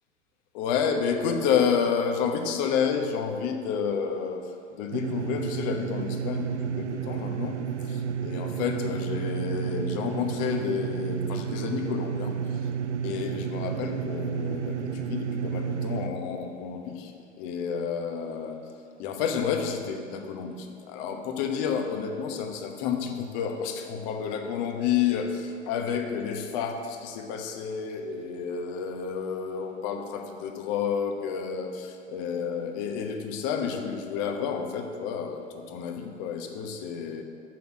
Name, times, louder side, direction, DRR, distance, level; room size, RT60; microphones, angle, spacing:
voice 1, 0.5-12.7 13.0-18.7 19.0-37.2, left 7 dB, 40° left, 5 dB, 1.0 m, -30 dB
sound 1, 4.9-16.1, right 8 dB, 65° right, 0.6 m, -31 dB
6.9 x 5.9 x 7.4 m, 2.3 s
figure-of-eight pair, 105°, 37 cm